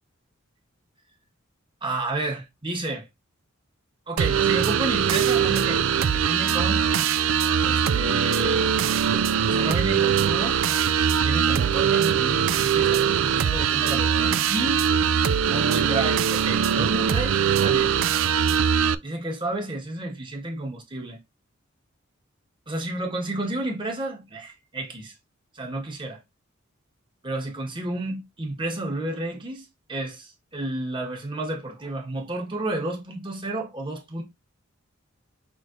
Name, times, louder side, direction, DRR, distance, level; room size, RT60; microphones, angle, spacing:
voice 1, 1.8-3.1 4.1-6.9 7.6-8.7 9.5-10.6 11.2-14.8 15.5-18.0 19.0-21.2 22.7-25.1 25.5-26.2 27.2-34.2, right 2 dB, 25° right, 1.4 m, -31 dB
sound 1, 4.2-18.9, right 8 dB, 70° right, 0.4 m, -22 dB
6.1 x 3.3 x 2.5 m
head